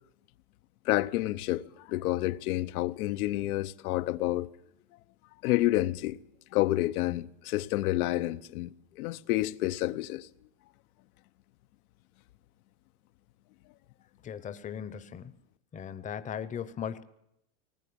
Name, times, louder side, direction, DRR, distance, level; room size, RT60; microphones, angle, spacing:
voice 1, 0.8-4.5 5.4-6.2 6.5-10.3, left 16 dB, 85° left, 1.0 m, -29 dB
voice 2, 14.2-15.4 15.7-17.0, left 8 dB, 20° left, 0.7 m, -38 dB
20.0 x 18.5 x 8.6 m
supercardioid pair, 155°, 43 cm